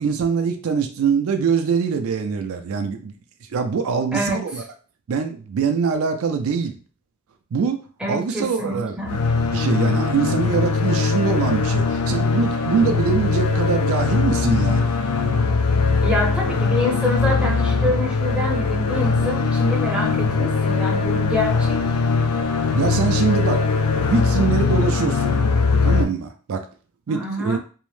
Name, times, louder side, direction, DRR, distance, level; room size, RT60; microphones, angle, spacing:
voice 1, 0.0-3.1 3.5-4.6 5.1-6.8 7.5-9.0 9.5-15.0 22.8-23.6 24.1-25.3 25.8-26.7 27.1-27.6, right 5 dB, 65° right, 7 dB, 0.4 m, -23 dB
voice 2, 8.0-9.2 16.0-21.8 27.1-27.6, left 1 dB, 5° right, -1 dB, 0.5 m, -26 dB
sound 1, 9.0-26.0, left 4 dB, 80° left, 0.4 m, -21 dB
2.7 x 2.1 x 3.1 m, 0.38 s
head